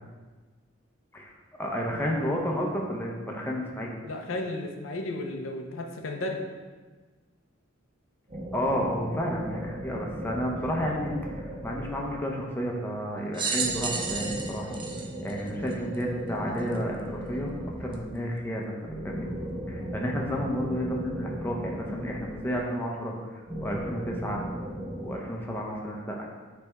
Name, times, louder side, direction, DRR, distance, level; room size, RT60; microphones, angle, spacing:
voice 1, 1.6-4.0 8.5-14.7 15.2-17.5 17.8-18.8 19.0-19.3 19.7-23.1 23.6-24.4 25.0-26.3, equal, 10° left, -2 dB, 0.7 m, -31 dB
voice 2, 4.0-6.4, left 2 dB, 80° left, 2 dB, 0.7 m, -33 dB
sound 1, 8.3-12.5 13.6-18.2 18.8-22.9 23.5-25.1, equal, 45° right, 1.3 m, -37 dB
sound 2, 13.3-16.0 16.7-16.8 17.9-18.0, right 4 dB, 25° right, 0.6 m, -32 dB
8.0 x 3.4 x 3.5 m, 1.4 s
head